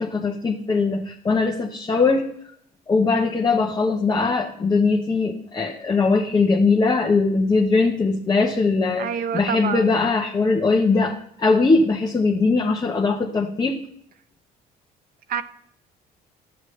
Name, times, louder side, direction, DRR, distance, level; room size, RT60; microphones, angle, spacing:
voice 1, 0.0-2.2 2.9-9.1 9.3-13.8, left 4 dB, 25° left, 1 dB, 1.0 m, -20 dB
voice 2, 9.0-10.0 15.3-15.4, right 8 dB, 60° right, 13 dB, 0.8 m, -28 dB
11.0 x 8.1 x 3.2 m, 0.71 s
cardioid pair, 110°, 17 cm